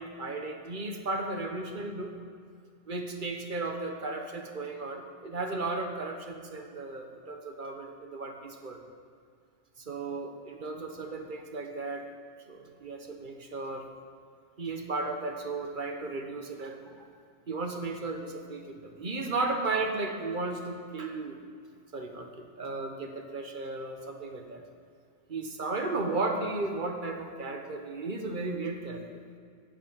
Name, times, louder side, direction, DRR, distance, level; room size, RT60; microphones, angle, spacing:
voice 1, 0.0-2.2 2.9-8.8 9.8-12.1 12.5-13.9 14.6-17.1 17.5-21.4 21.9-24.6 25.3-29.0, right 3 dB, 45° right, 4 dB, 1.1 m, -35 dB
8.7 x 7.3 x 8.7 m, 2.2 s
omnidirectional pair, 1.2 m